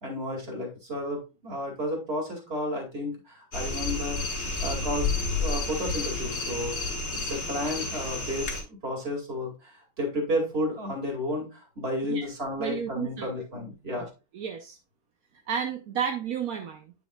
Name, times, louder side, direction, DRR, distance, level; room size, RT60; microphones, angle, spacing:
voice 1, 0.0-4.2 4.6-6.8 7.1-14.1, left 1 dB, 30° right, 1 dB, 2.4 m, -32 dB
sound 1, 3.5-8.6, left 3 dB, 35° left, 1.8 m, -30 dB
voice 2, 12.6-13.5 13.9-14.0 14.3-14.8 15.5-16.9, right 7 dB, 60° right, 4 dB, 1.0 m, -32 dB
9.1 x 6.2 x 2.3 m, 0.29 s
omnidirectional pair, 2.2 m